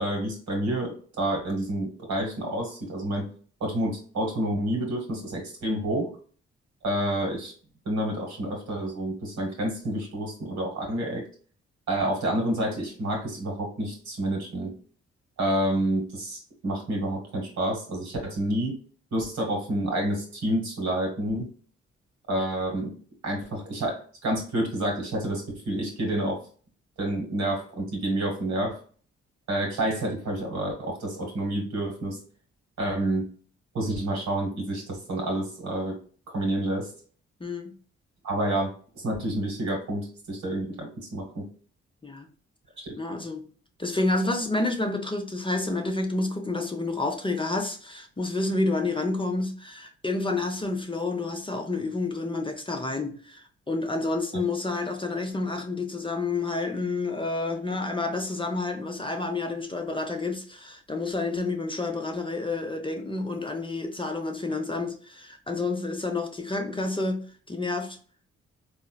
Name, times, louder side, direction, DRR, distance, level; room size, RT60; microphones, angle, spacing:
voice 1, 0.0-3.3 3.6-6.1 6.8-7.5 7.8-11.2 11.9-14.7 15.4-18.8 19.1-21.5 22.3-22.9 23.2-26.4 27.0-28.8 29.5-32.2 32.8-33.3 33.7-36.0 36.3-36.9 38.2-38.7 38.9-41.5 42.8-42.9, right 1 dB, 70° right, 1.5 m, -29 dB
voice 2, 37.4-37.7 42.0-42.3 43.0-43.4 43.8-68.0, left 2 dB, 15° left, 0.6 m, -29 dB
3.8 x 2.5 x 2.3 m
hypercardioid pair, 45°, 30 cm